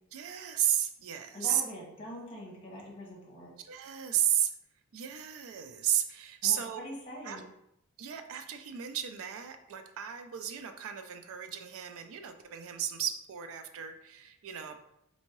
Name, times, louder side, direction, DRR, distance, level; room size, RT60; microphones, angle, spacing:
voice 1, 0.1-1.6 3.6-4.5 4.9-6.8 7.2-7.4 8.0-14.8, right 10 dB, 65° right, 8 dB, 0.4 m, -33 dB
voice 2, 1.3-3.5 6.4-7.4, left 1 dB, 25° left, -3 dB, 1.2 m, -43 dB
4.4 x 2.7 x 3.0 m, 0.80 s
head